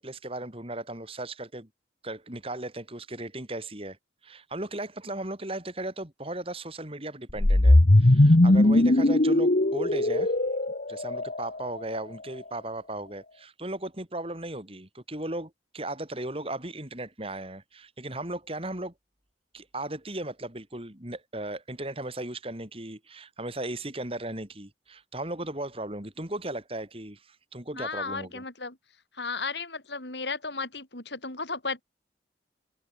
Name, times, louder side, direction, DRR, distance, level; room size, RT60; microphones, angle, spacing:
voice 1, 0.0-1.7 2.0-4.0 4.2-10.3 10.9-18.9 19.5-28.4, right 1 dB, 35° right, 4.5 m, -36 dB
sound 1, 7.3-11.6, left 1 dB, 50° left, 1.2 m, -19 dB
voice 2, 27.8-28.8 29.1-31.8, left 4 dB, 80° left, 7.1 m, -34 dB
open air
head